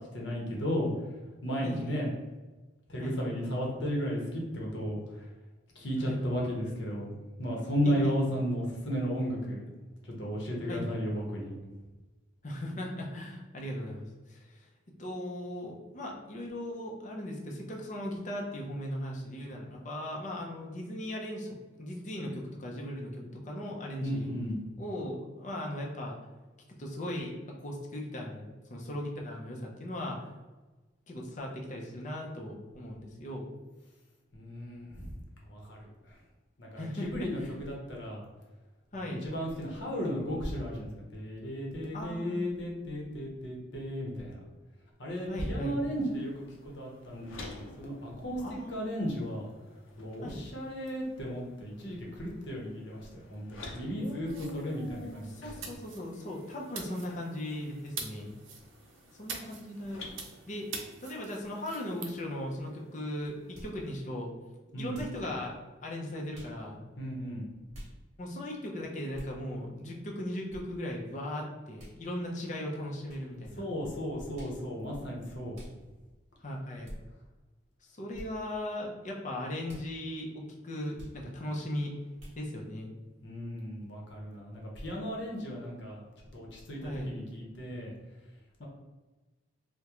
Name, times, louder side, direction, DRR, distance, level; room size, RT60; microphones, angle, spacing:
voice 1, 0.1-1.1 1.4-2.1 2.9-5.3 5.7-7.1 7.4-9.7 10.0-11.5 24.0-24.6 34.3-35.2 35.4-36.2 36.6-38.2 39.0-44.4 45.0-49.5 50.0-55.5 64.7-65.0 67.0-67.5 73.5-75.6 83.2-86.0 86.3-87.9 88.6-88.7, equal, 65° left, -2 dB, 0.8 m, -34 dB
voice 2, 1.6-2.1 3.0-3.2 6.0-6.2 7.8-8.2 10.7-10.9 12.4-14.7 15.0-24.3 24.8-26.2 26.8-27.4 27.6-30.3 31.1-33.5 36.8-37.5 38.9-39.3 41.9-42.5 45.3-45.8 48.4-49.1 50.2-50.4 54.0-58.3 59.1-60.0 60.5-60.7 61.0-63.4 63.6-64.3 64.8-66.8 68.2-73.6 76.4-76.9 77.8-81.9 82.4-82.9 86.8-87.1 88.6-88.7, left 1 dB, 40° left, -1 dB, 0.6 m, -38 dB
sound 1, 45.8-63.9, left 2 dB, 90° left, 0.6 m, -53 dB
sound 2, 54.3-62.1, right 5 dB, 80° right, 0.5 m, -46 dB
sound 3, 63.5-63.8 64.9-65.2 66.3-66.6 67.7-67.9 69.1-69.4 70.5-70.6 71.8-72.0 73.1-73.2 74.3-74.6 75.5-75.8 76.8-77.0 78.1-78.3 79.6-79.9 81.0-81.2 82.2-82.4, equal, 35° right, 1.1 m, -46 dB
3.6 x 2.2 x 2.9 m, 1.2 s
head